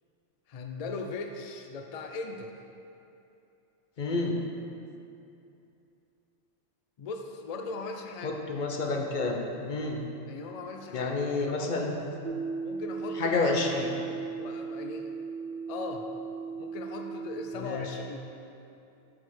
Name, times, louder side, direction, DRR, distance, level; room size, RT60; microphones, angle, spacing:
voice 1, 0.5-2.5 7.0-8.4 10.3-11.9 12.6-13.6 14.4-15.2 15.7-16.1 16.6-18.2, left 4 dB, 70° left, 4 dB, 0.3 m, -39 dB
voice 2, 4.0-4.4 8.2-9.4 9.6-10.0 10.9-11.9 13.1-13.9 17.6-17.9, left 3 dB, 45° left, 1 dB, 0.8 m, -29 dB
sound 1, 12.2-17.6, right 5 dB, 60° right, 0.5 m, -37 dB
5.9 x 4.7 x 6.3 m, 2.7 s
omnidirectional pair, 1.2 m